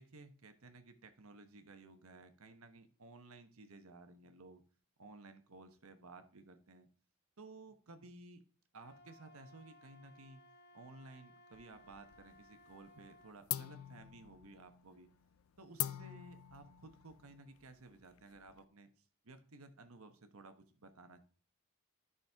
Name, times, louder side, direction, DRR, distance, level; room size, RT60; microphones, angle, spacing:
voice 1, 0.0-4.6 5.0-6.9 7.4-8.4 8.7-10.4 10.7-15.1 15.6-18.9 19.2-21.2, right 2 dB, 80° right, 8 dB, 1.2 m, -56 dB
Wind instrument woodwind instrument, 8.8-13.4, left 1 dB, 50° left, 1.0 m, -62 dB
sound 1, 11.5-12.4 12.7-13.1 13.5-18.6, left 14 dB, 75° left, 0.4 m, -44 dB
10.5 x 6.3 x 3.6 m, 0.42 s
head